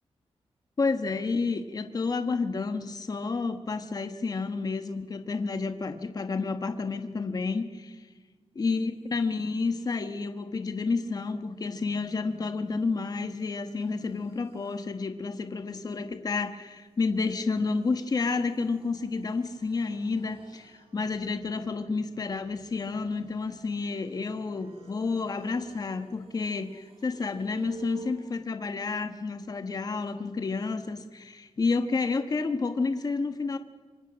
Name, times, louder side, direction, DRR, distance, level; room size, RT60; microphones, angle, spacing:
voice 1, 0.8-8.0 8.6-33.6, left 4 dB, 35° left, 7 dB, 1.3 m, -30 dB
sound 1, 9.1-10.1 12.2-28.4, right 2 dB, 60° right, 3.2 m, -53 dB
26.0 x 25.5 x 6.3 m, 1.4 s
wide cardioid pair, 165°, 11 cm